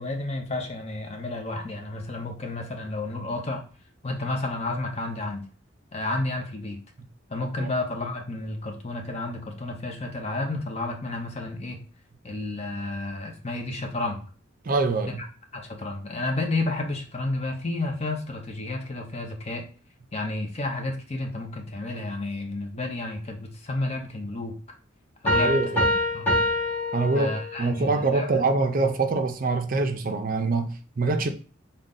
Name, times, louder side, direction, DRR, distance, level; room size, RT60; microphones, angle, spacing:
voice 1, 0.0-3.6 4.0-5.4 5.9-6.8 7.3-11.8 12.2-14.3 15.2-15.3 15.5-19.6 20.1-24.6 25.2-25.7 26.1-26.4 27.1-28.3, left 2 dB, 30° left, 0.6 m, -31 dB
voice 2, 14.6-15.2 25.3-25.9 26.9-30.7 31.0-31.3, right 3 dB, 45° right, 0.4 m, -24 dB
sound 1, 25.3-27.8, left 1 dB, 10° left, 1.2 m, -25 dB
3.8 x 2.2 x 3.7 m
head